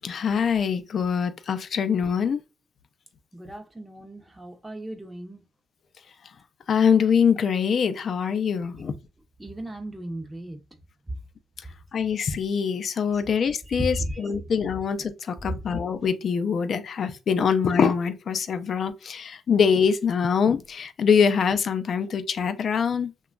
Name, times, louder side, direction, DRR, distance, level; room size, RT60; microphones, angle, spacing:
voice 1, 0.0-2.4 6.7-8.9 11.9-23.1, left 6 dB, 55° left, 0.5 m, -24 dB
voice 2, 3.3-5.4 9.4-10.6 13.1-13.2 13.7-14.3 15.4-15.6, right 1 dB, 15° right, 0.6 m, -35 dB
2.9 x 2.2 x 2.3 m
cardioid pair, 90°, 0 cm